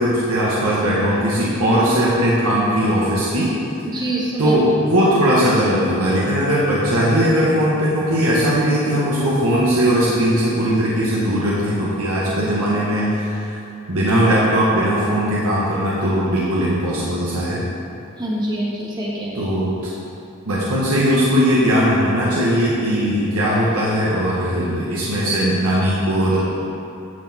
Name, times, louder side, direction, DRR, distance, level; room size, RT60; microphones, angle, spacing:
voice 1, 0.0-3.5 4.4-13.6 13.9-17.6 19.3-19.7 20.5-26.4, equal, 80° right, -7 dB, 1.4 m, -19 dB
voice 2, 3.8-4.5 12.4-12.5 18.2-19.5, right 1 dB, 20° right, -5 dB, 1.5 m, -25 dB
11.0 x 6.5 x 4.3 m, 2.6 s
head